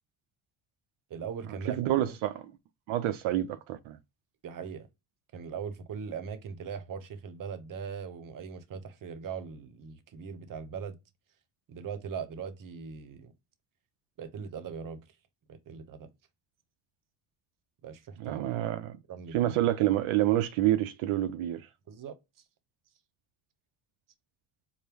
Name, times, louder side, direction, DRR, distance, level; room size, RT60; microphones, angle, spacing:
voice 1, 1.1-1.8 2.1-2.2 4.4-4.9 5.3-11.0 11.7-13.3 14.2-15.0 15.5-16.1 17.8-18.4 19.1-19.6 21.9-22.2, right 6 dB, 45° right, 0.8 m, -40 dB
voice 2, 1.8-2.3 2.9-4.0 18.2-19.0 19.3-21.7, right 13 dB, 80° right, 0.6 m, -28 dB
4.5 x 2.1 x 3.4 m
cardioid pair, 100°, 47 cm